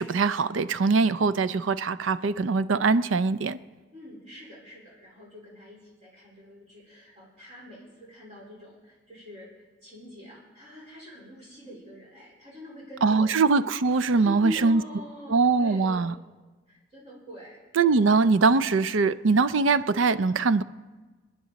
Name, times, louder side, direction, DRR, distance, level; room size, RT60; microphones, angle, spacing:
voice 1, 0.0-3.6 13.0-14.8 15.3-16.1 17.8-20.6, right 4 dB, 85° right, 0.5 m, -22 dB
voice 2, 3.9-13.3 14.1-16.2 16.7-17.9, equal, 35° right, 4.2 m, -44 dB
27.5 x 9.8 x 4.1 m
head